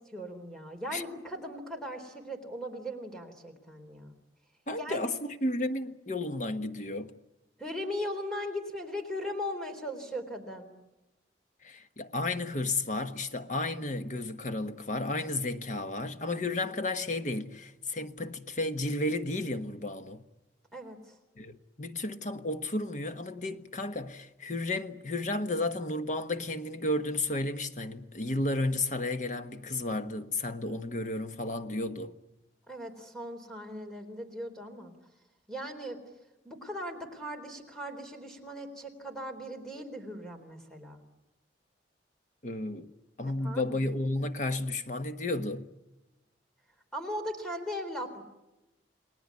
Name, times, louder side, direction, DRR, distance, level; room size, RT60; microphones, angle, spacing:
voice 1, 0.1-4.2 4.8-5.1 7.6-10.7 20.7-21.2 32.7-34.9 35.5-36.0 36.4-41.0 43.4-43.8 46.9-48.2, equal, 5° left, 3.9 m, -38 dB
voice 2, 4.7-7.1 11.6-20.2 21.4-32.1 42.4-42.9 43.2-45.7, left 2 dB, 45° left, 1.3 m, -33 dB
30.0 x 19.5 x 8.5 m
head